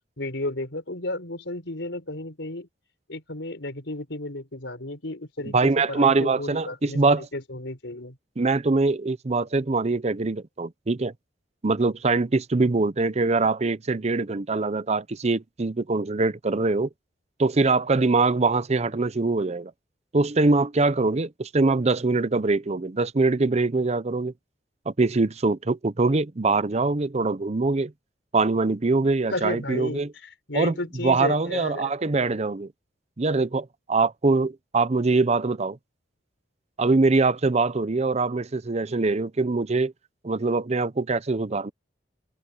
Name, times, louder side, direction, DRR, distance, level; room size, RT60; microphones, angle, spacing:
voice 1, 0.2-2.7 3.1-8.2 29.3-31.9, left 2 dB, 85° left, 4.2 m, -33 dB
voice 2, 5.5-7.3 8.4-11.1 11.6-16.9 17.4-19.7 20.1-24.3 24.9-27.9 28.3-30.1 30.5-30.7 31.0-32.7 33.2-35.8 36.8-39.9 40.2-41.7, right 3 dB, 35° right, 0.7 m, -23 dB
head